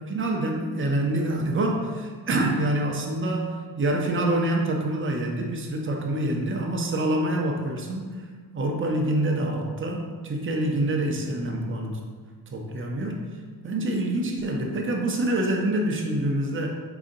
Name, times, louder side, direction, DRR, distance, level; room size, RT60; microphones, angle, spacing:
voice 1, 0.0-8.1 8.5-12.0 12.5-13.2 13.6-16.7, right 1 dB, 30° right, 1 dB, 0.4 m, -26 dB
4.7 x 2.6 x 3.8 m, 1.5 s
wide cardioid pair, 180°, 46 cm